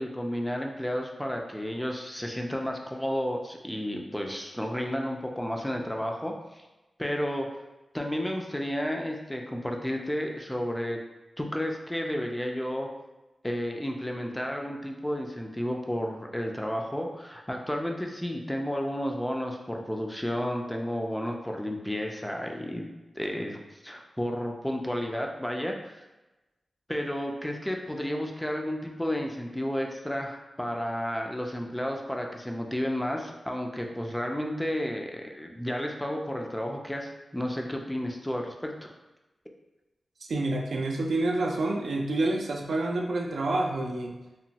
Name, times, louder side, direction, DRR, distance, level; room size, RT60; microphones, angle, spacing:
voice 1, 0.0-6.7 7.0-7.5 7.9-11.0 11.4-12.9 13.4-22.9 23.2-26.0 26.9-38.9, equal, 10° left, 1 dB, 0.3 m, -32 dB
voice 2, 40.2-44.2, right 2 dB, 75° right, 2 dB, 0.3 m, -28 dB
2.9 x 2.1 x 2.7 m, 1.1 s
wide cardioid pair, 95°, 0 cm